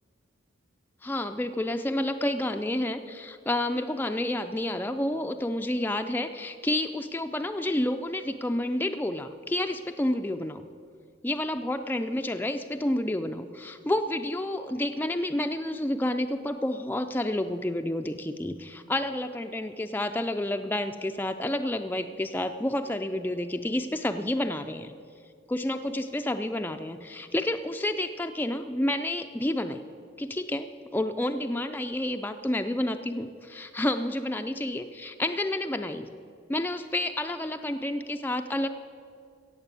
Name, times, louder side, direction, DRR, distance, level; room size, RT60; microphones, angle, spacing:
voice 1, 1.0-10.6 11.2-24.9 25.5-29.8 30.2-36.1 36.5-38.7, left 1 dB, 10° left, 7 dB, 0.3 m, -29 dB
16.0 x 7.4 x 8.2 m, 2.3 s
head